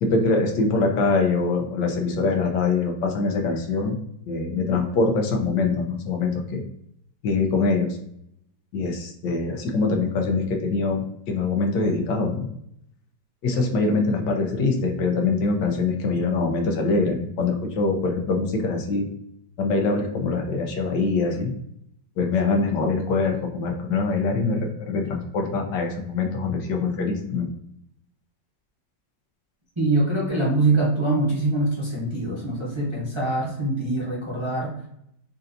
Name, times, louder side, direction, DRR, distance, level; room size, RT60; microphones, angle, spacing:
voice 1, 0.0-3.9 4.3-6.6 7.2-8.0 8.7-12.5 13.4-19.1 19.6-21.5 22.2-27.5, left 3 dB, 85° left, 2 dB, 1.4 m, -24 dB
voice 2, 29.8-34.7, right 2 dB, 20° right, -6 dB, 0.8 m, -24 dB
5.5 x 2.6 x 2.6 m, 0.74 s
omnidirectional pair, 1.9 m